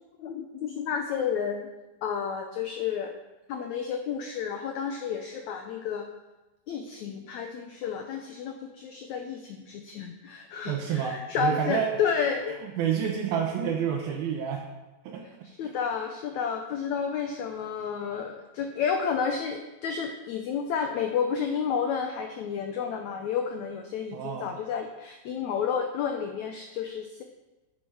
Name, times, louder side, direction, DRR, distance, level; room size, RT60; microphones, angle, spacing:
voice 1, 0.2-1.7 2.0-3.1 3.5-6.1 6.7-12.6 15.4-27.2, left 6 dB, 80° left, 4 dB, 1.6 m, -31 dB
voice 2, 10.7-11.9 12.5-14.7 15.0-15.2 15.6-15.7 24.1-24.6, right 8 dB, 80° right, 0 dB, 2.9 m, -29 dB
10.5 x 9.1 x 4.9 m, 1.1 s
omnidirectional pair, 4.2 m